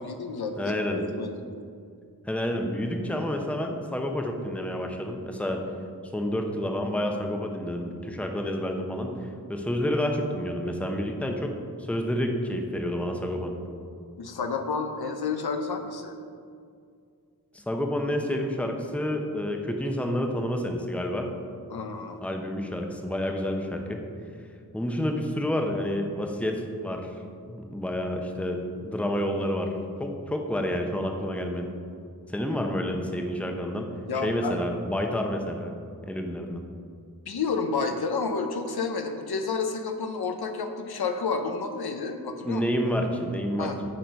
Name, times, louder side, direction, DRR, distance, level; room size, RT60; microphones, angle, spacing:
voice 1, 0.0-1.3 14.2-16.2 21.7-22.2 34.1-34.6 37.3-42.9 43.6-43.8, left 4 dB, 80° left, 6 dB, 0.7 m, -30 dB
voice 2, 0.6-1.0 2.3-5.6 6.1-11.5 11.8-13.6 17.5-21.3 22.2-24.0 24.7-27.1 27.5-29.7 30.0-31.7 32.3-33.9 34.2-35.7 36.0-36.6 42.4-43.7, equal, 5° left, 3 dB, 0.7 m, -29 dB
8.9 x 3.9 x 5.2 m, 2.3 s
wide cardioid pair, 85°, 38 cm